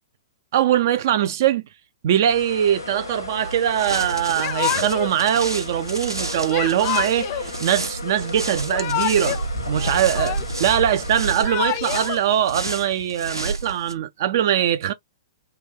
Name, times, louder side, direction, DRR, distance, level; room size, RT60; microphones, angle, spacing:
voice 1, 0.5-1.6 2.0-9.4 9.7-14.9, right 10 dB, 45° right, 0.3 m, -22 dB
sound 1, 2.2-11.3, left 3 dB, 80° left, 1.0 m, -35 dB
sound 2, 3.4-13.9, right 3 dB, 85° right, 0.7 m, -31 dB
Yell / Crying sobbing, 4.4-5.2 6.5-7.5 8.5-9.4 9.7-10.7 11.2-12.2, left 11 dB, 35° left, 0.4 m, -27 dB
3.4 x 2.2 x 3.3 m
figure-of-eight pair, 110°, 2 cm